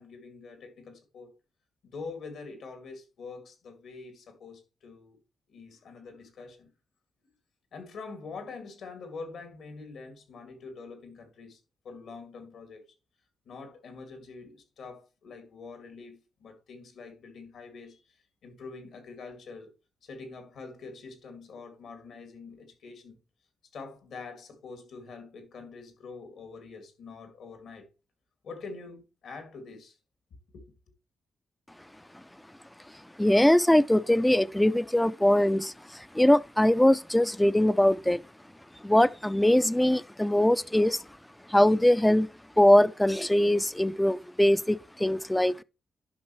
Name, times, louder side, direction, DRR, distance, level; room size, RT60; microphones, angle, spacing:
voice 1, 0.0-1.3 1.8-5.2 5.5-6.7 7.7-11.6 11.8-12.8 13.5-19.7 20.0-23.2 23.7-27.9 28.4-30.0 30.5-30.7, left 4 dB, 80° left, 2.2 m, -45 dB
voice 2, 33.2-38.2 38.8-41.0 41.5-42.3 42.6-45.6, left 1 dB, 5° left, 0.4 m, -22 dB
11.5 x 5.4 x 3.1 m
cardioid pair, 85°, 0 cm